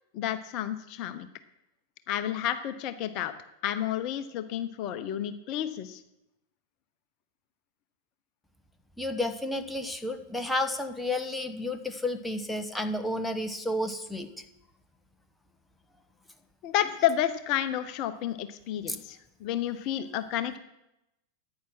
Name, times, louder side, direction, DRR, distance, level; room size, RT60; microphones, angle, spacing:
voice 1, 0.1-1.3 2.1-3.3 3.6-6.0 16.6-20.6, left 11 dB, 40° left, 11 dB, 0.9 m, -30 dB
voice 2, 9.0-14.3 18.9-19.0, left 1 dB, 5° left, 7 dB, 1.1 m, -31 dB
14.0 x 9.7 x 6.0 m, 0.87 s
figure-of-eight pair, 90°, 0 cm